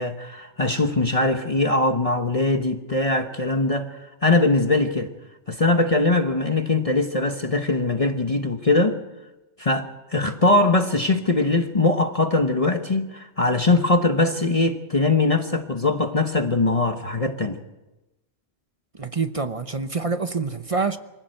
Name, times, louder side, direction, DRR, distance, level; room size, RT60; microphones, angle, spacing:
voice 1, 0.0-5.1 5.5-9.0 9.6-17.6, left 2 dB, 35° left, 1.1 m, -21 dB
voice 2, 18.9-21.0, right 4 dB, 35° right, 0.9 m, -26 dB
24.5 x 16.0 x 7.8 m
omnidirectional pair, 1.1 m